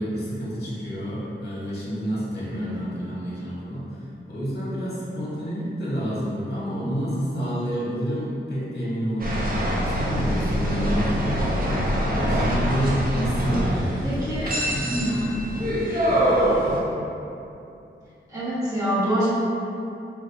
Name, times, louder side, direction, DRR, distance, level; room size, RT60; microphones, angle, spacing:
voice 1, 0.0-15.4, equal, 55° left, -7 dB, 1.1 m, -29 dB
voice 2, 2.4-2.8 14.0-14.6 14.9-15.3 18.3-19.3, equal, 15° right, -12 dB, 1.3 m, -26 dB
sound 1, 9.2-16.8, equal, 45° right, 0.6 m, -24 dB
4.7 x 2.5 x 2.7 m, 2.7 s
wide cardioid pair, 90°, 21 cm